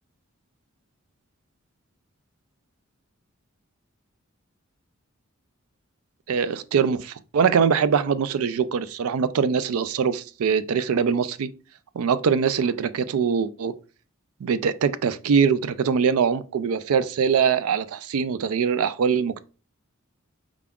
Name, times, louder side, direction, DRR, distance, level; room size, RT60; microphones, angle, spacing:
voice 1, 6.3-11.5 12.0-13.8 14.4-19.4, right 6 dB, 85° right, 0.4 m, -23 dB
4.8 x 3.5 x 2.3 m
head